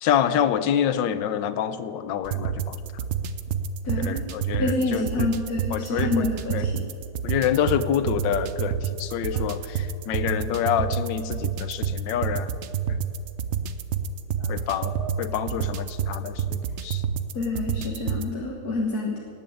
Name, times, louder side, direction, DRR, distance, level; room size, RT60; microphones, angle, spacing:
voice 1, 0.0-2.8 4.0-5.3 5.7-6.7 7.2-12.5 14.5-14.9 15.2-17.0, left 9 dB, 75° left, 12 dB, 1.4 m, -27 dB
sound 1, 2.2-18.3, right 7 dB, 80° right, 0.6 m, -29 dB
voice 2, 3.9-4.2 4.6-6.8 14.4-15.1 17.4-19.2, left 2 dB, 55° left, -2 dB, 2.0 m, -28 dB
18.5 x 7.7 x 8.5 m, 2.6 s
omnidirectional pair, 2.0 m